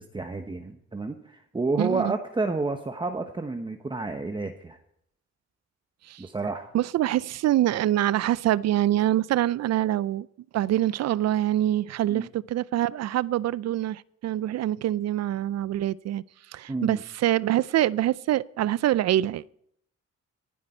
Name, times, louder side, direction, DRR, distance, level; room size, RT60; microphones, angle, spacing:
voice 1, 0.0-4.8 6.2-6.7 12.1-12.3 16.7-17.0, right 3 dB, 15° right, 1.1 m, -30 dB
voice 2, 1.8-2.1 6.1-6.2 6.7-10.3 10.5-16.2 16.5-19.5, right 13 dB, 60° right, 0.5 m, -25 dB
18.5 x 12.0 x 4.4 m
cardioid pair, 90°, 30 cm